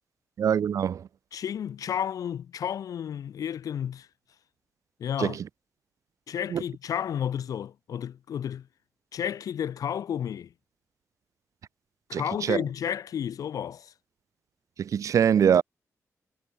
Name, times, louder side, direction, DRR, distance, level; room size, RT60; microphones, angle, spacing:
voice 1, 0.4-1.1 5.2-5.5 6.5-6.6 12.1-12.6 14.8-15.6, right 8 dB, 65° right, 0.9 m, -24 dB
voice 2, 1.3-4.1 5.0-5.4 6.3-8.7 9.1-10.5 12.1-13.9, left 9 dB, 85° left, 4.6 m, -32 dB
wide cardioid pair, 145°, 6 cm